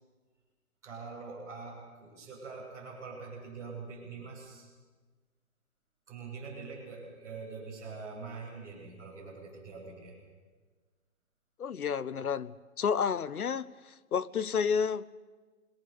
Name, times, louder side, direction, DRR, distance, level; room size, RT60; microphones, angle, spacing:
voice 1, 0.8-4.7 6.1-10.2, right 4 dB, 5° right, 6.8 m, -44 dB
voice 2, 11.6-15.2, left 6 dB, 90° left, 1.2 m, -31 dB
26.5 x 22.0 x 7.0 m
hypercardioid pair, 175°, 43 cm